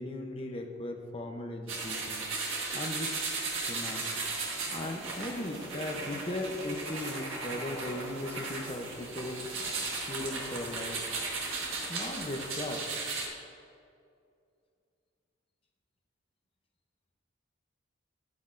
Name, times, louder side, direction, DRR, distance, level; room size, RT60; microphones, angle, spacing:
voice 1, 0.0-2.2 2.7-3.2 3.7-4.1 4.7-9.5 10.1-11.0 11.9-13.0, left 1 dB, 25° left, 3 dB, 0.6 m, -37 dB
sound 1, 1.7-13.3, right 3 dB, 75° right, 1.4 m, -36 dB
9.5 x 9.3 x 2.5 m, 2.4 s
head